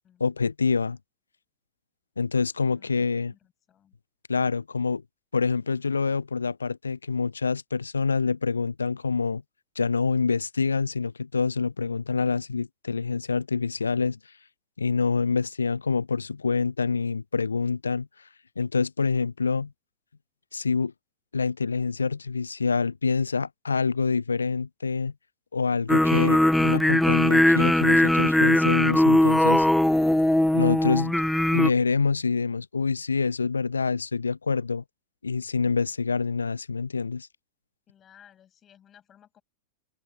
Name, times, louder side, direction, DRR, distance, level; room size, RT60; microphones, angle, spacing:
voice 1, 0.2-1.0 2.2-3.3 4.3-5.0 5.3-9.4 9.8-14.2 14.8-18.1 18.6-19.7 20.5-20.9 21.3-25.1 25.5-29.7 30.5-31.1 31.5-34.8 35.2-37.3, left 5 dB, 75° left, 0.7 m, -26 dB
voice 2, 2.6-3.9 37.9-39.4, left 10 dB, 25° left, 6.3 m, -57 dB
sound 1, 25.9-31.7, left 1 dB, 5° left, 0.4 m, -20 dB
open air
figure-of-eight pair, 90°, 0 cm